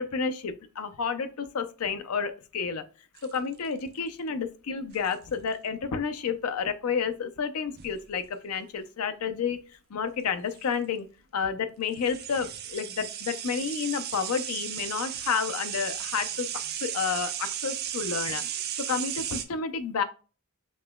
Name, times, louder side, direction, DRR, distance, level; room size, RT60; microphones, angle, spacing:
voice 1, 0.0-2.8 3.2-9.6 9.9-11.1 11.3-16.5 16.8-20.0, left 6 dB, 85° left, 9 dB, 0.5 m, -30 dB
sound 1, 3.2-3.9 4.9-5.3 7.8-8.0 10.2-10.3 10.5-10.6 11.9-19.4, right 10 dB, 45° right, 0.5 m, -35 dB
5.3 x 2.9 x 2.2 m, 0.35 s
head